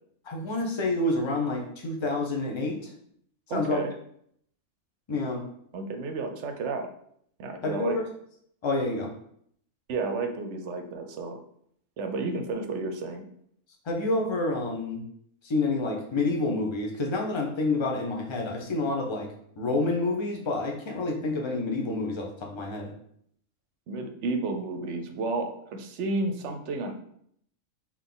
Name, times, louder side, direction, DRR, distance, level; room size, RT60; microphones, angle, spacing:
voice 1, 0.2-2.9 3.5-3.8 5.1-5.4 7.6-8.1 8.6-9.1 13.8-15.0 15.4-19.3 19.6-22.9, left 2 dB, 30° left, -1 dB, 0.6 m, -28 dB
voice 2, 3.5-3.9 5.7-6.9 7.4-8.0 9.9-11.4 12.0-13.2 23.9-27.0, right 3 dB, 65° right, 5 dB, 0.8 m, -32 dB
3.9 x 3.0 x 3.8 m, 0.68 s
omnidirectional pair, 1.4 m